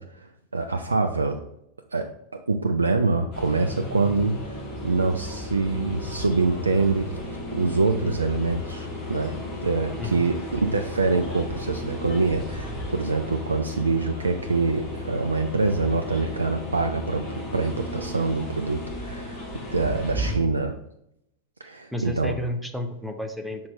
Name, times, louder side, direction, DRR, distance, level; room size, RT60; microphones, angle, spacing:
voice 1, 0.0-1.4 1.9-2.1 2.5-9.3 9.6-19.4 19.7-20.7 21.6-22.3, right 3 dB, 75° right, 5 dB, 0.4 m, -25 dB
sound 1, 3.3-20.4, left 1 dB, 30° left, 2.2 m, -34 dB
voice 2, 21.9-23.7, left 1 dB, ahead, 5 dB, 0.7 m, -31 dB
5.9 x 4.3 x 3.8 m, 0.78 s
figure-of-eight pair, 90°, 0 cm